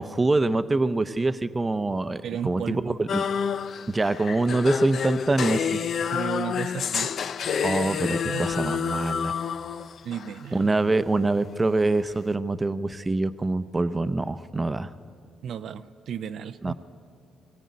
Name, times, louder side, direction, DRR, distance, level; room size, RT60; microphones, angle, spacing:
voice 1, 0.0-3.2 3.9-5.8 7.6-9.3 10.5-14.9 16.6-16.7, right 2 dB, 20° right, 11 dB, 0.6 m, -25 dB
voice 2, 2.2-3.0 6.1-7.1 8.3-8.5 10.0-10.7 15.4-16.7, right 8 dB, 70° right, 10 dB, 0.6 m, -34 dB
sound 1, 3.1-10.3, left 7 dB, 60° left, 0.5 m, -28 dB
21.0 x 15.5 x 9.5 m, 2.6 s
cardioid pair, 90°, 0 cm